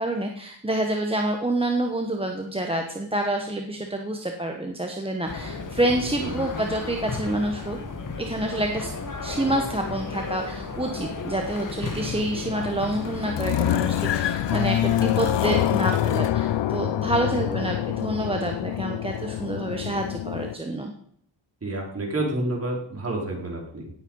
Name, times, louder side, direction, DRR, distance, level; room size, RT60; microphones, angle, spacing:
voice 1, 0.0-7.8 8.2-8.9 9.2-20.9, right 1 dB, 10° right, 3 dB, 1.2 m, -28 dB
sound 1, 5.3-15.7, left 4 dB, 40° left, 2.0 m, -34 dB
sound 2, 12.0-20.5, left 12 dB, 60° left, 0.7 m, -26 dB
voice 2, 17.3-17.7 21.6-23.9, right 2 dB, 30° right, -1 dB, 4.3 m, -30 dB
17.5 x 8.3 x 5.5 m, 0.65 s
wide cardioid pair, 130°, 48 cm